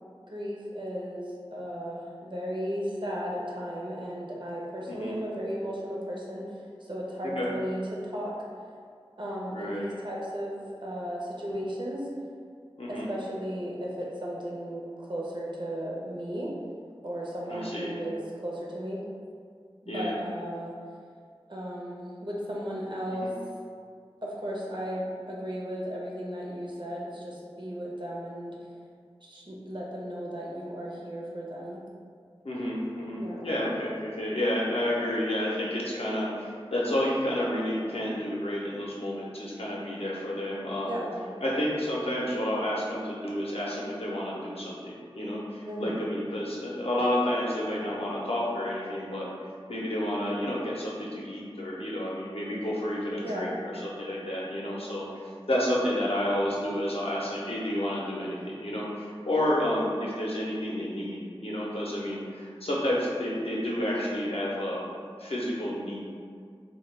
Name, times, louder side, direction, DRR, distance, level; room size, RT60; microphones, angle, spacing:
voice 1, 0.3-6.5 6.8-8.4 9.2-12.1 12.9-16.5 17.0-19.0 19.8-20.7 21.5-23.3 24.2-28.6 29.2-31.8 33.2-33.5 40.9-41.1 45.7-46.0 53.2-53.6, equal, 50° right, -4 dB, 0.5 m, -35 dB
voice 2, 9.5-9.9 12.8-13.1 17.5-17.9 19.9-20.1 23.2-23.3 32.4-41.0 41.4-49.3 49.7-64.8 65.2-66.0, left 1 dB, 80° left, -5 dB, 0.5 m, -30 dB
2.1 x 2.1 x 3.1 m, 2.1 s
wide cardioid pair, 40°, 10 cm